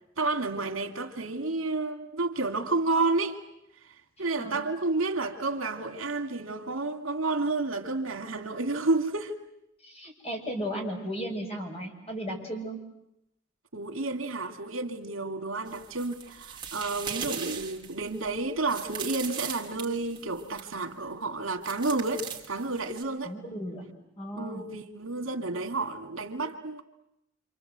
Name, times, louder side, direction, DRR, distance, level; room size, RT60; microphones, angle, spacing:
voice 1, 0.2-3.4 4.2-9.3 13.7-23.3 24.4-26.8, right 3 dB, 85° right, 2.3 m, -30 dB
voice 2, 9.8-12.8 23.2-23.9 24.2-24.6, equal, 30° left, 5.9 m, -35 dB
sound 1, 15.7-20.7 21.6-23.0, right 7 dB, 25° right, 3.0 m, -39 dB
27.5 x 26.5 x 8.0 m
head